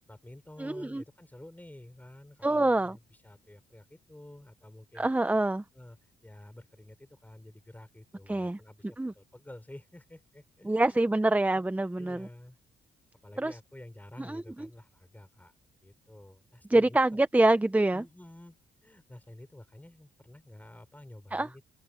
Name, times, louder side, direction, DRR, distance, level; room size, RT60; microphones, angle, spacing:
voice 1, 0.1-5.1 5.7-6.0 6.2-8.8 9.1-11.6 12.0-12.6 13.2-15.5 15.8-17.2 17.9-18.6 18.8-21.7, left 1 dB, 10° left, 6.3 m, -50 dB
voice 2, 0.6-1.0 2.4-3.0 5.0-5.6 8.3-8.6 9.0-9.1 10.6-12.3 13.4-13.6 14.2-14.7 16.7-18.0 21.3-21.5, right 2 dB, 10° right, 0.8 m, -26 dB
open air
cardioid pair, 90°, 20 cm